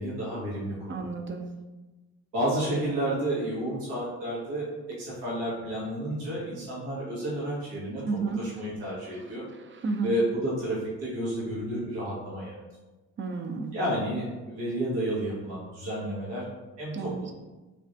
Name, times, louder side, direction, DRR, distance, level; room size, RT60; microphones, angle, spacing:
voice 1, 0.0-1.0 2.3-8.0 8.4-9.4 10.0-12.6 13.7-16.4 16.8-17.3, right 1 dB, 80° right, -7 dB, 1.5 m, -31 dB
voice 2, 0.9-1.5 8.0-8.4 9.7-10.1 13.2-13.7 16.9-17.2, right 4 dB, 30° right, 5 dB, 0.5 m, -31 dB
3.5 x 3.1 x 2.6 m, 1.2 s
hypercardioid pair, 50°, 42 cm